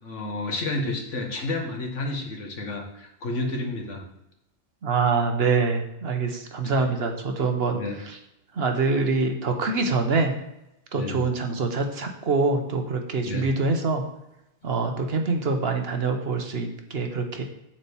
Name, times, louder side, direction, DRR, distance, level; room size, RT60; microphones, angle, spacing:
voice 1, 0.0-4.0 6.6-6.9 7.7-8.0 10.9-11.3 13.2-13.5, left 2 dB, 90° left, 2 dB, 1.8 m, -31 dB
voice 2, 4.8-7.8 8.6-10.3 10.9-14.0 14.6-17.4, right 4 dB, 60° right, 5 dB, 1.2 m, -25 dB
7.5 x 4.4 x 7.0 m, 0.86 s
omnidirectional pair, 1.2 m